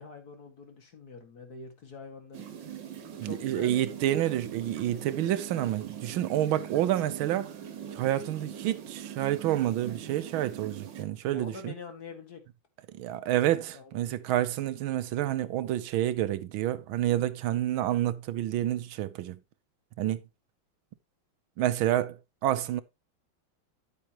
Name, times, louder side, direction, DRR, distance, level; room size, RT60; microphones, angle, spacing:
voice 1, 0.0-2.5 3.2-3.9 11.3-12.4 13.7-14.1, left 4 dB, 50° left, 2.4 m, -45 dB
sound 1, 2.3-11.0, right 8 dB, 65° right, 1.8 m, -42 dB
voice 2, 3.2-7.5 7.9-11.7 12.9-19.4 20.0-20.2 21.6-22.8, right 13 dB, 80° right, 1.5 m, -29 dB
10.0 x 8.5 x 2.9 m
omnidirectional pair, 2.2 m